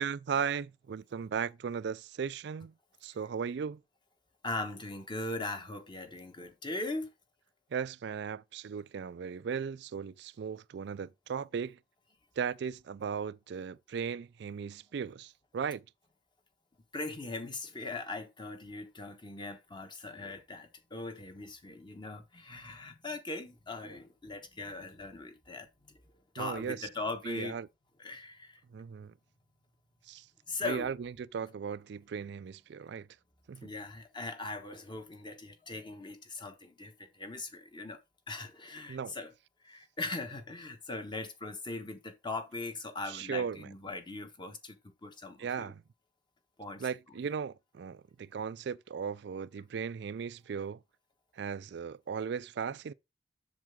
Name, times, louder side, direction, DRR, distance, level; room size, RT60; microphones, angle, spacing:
voice 1, 0.0-2.7 3.0-3.8 7.7-11.8 12.4-15.8 26.4-26.9 27.2-27.7 28.7-29.1 30.1-30.2 30.6-33.1 33.5-33.7 38.9-39.2 43.1-43.7 45.4-45.8 46.8-50.8 51.4-52.9, right 6 dB, 65° right, 0.4 m, -37 dB
voice 2, 4.4-7.1 16.9-26.0 26.3-27.6 28.0-28.6 30.5-30.9 33.6-38.0 38.3-39.3 39.6-45.7 46.6-46.9, left 2 dB, 25° left, 1.3 m, -40 dB
7.5 x 6.7 x 3.6 m
head